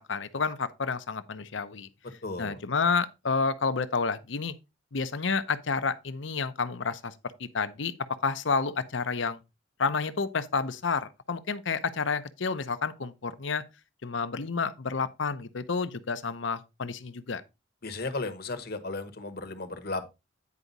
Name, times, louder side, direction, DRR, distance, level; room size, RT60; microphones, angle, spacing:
voice 1, 0.0-1.9 2.4-4.5 4.9-7.1 7.4-7.9 8.2-9.4 9.8-13.6 14.0-17.4, left 5 dB, 70° left, 0.8 m, -30 dB
voice 2, 2.2-2.6 17.8-20.1, left 3 dB, 50° left, 1.2 m, -35 dB
9.7 x 4.9 x 4.0 m
head